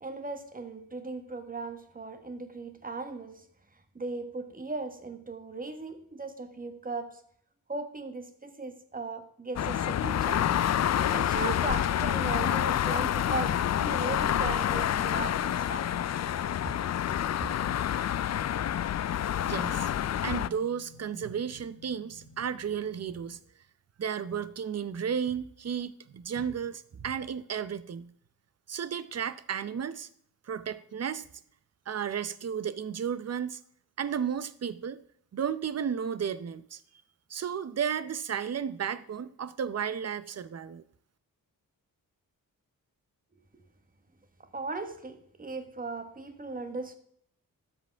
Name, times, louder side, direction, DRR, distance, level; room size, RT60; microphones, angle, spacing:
voice 1, 0.0-3.4 3.9-7.2 7.7-10.6 11.1-16.0 16.6-16.7 17.4-17.6 44.5-47.0, right 3 dB, 25° right, 1.4 m, -37 dB
sound 1, 9.6-20.5, left 10 dB, 50° left, 0.4 m, -28 dB
sound 2, 11.6-23.4, left 7 dB, 90° left, 1.3 m, -48 dB
voice 2, 19.4-19.9 20.2-23.4 24.0-28.1 28.7-30.1 30.5-31.3 31.9-33.6 34.0-35.0 35.3-36.8 37.3-40.8, right 7 dB, 45° right, 0.7 m, -33 dB
12.5 x 8.0 x 3.5 m
cardioid pair, 90°, 35 cm